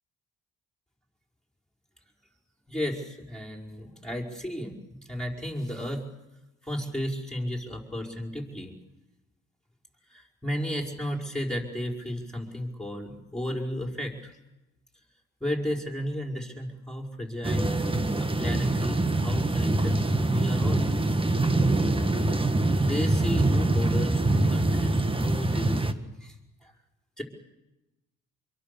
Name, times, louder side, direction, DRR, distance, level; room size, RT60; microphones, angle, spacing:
voice 1, 2.7-6.0 6.6-8.7 10.1-14.3 15.4-17.7 18.2-20.9 22.8-26.3 26.6-26.7 27.2-27.3, equal, ahead, 1 dB, 5.3 m, -33 dB
sound 1, 17.4-25.9, right 2 dB, 15° right, 1.6 m, -24 dB
26.0 x 23.0 x 7.0 m, 0.98 s
cardioid pair, 90°, 30 cm